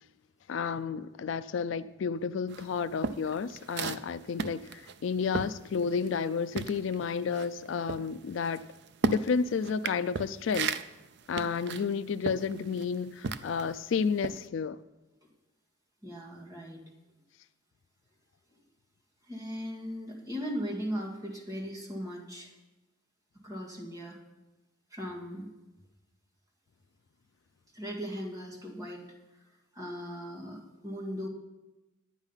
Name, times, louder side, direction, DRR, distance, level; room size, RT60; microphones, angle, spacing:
voice 1, 0.5-8.6 9.0-10.7 11.3-14.8, left 5 dB, 65° left, 13 dB, 0.3 m, -31 dB
sound 1, 2.5-6.3 6.5-13.8 14.2-14.5, right 4 dB, 55° right, 0.4 m, -35 dB
voice 2, 16.0-16.8 19.2-22.5 23.4-24.2 24.9-25.5 27.7-29.1 29.7-31.3, equal, 15° right, -2 dB, 1.9 m, -38 dB
10.5 x 8.9 x 5.6 m, 1.1 s
head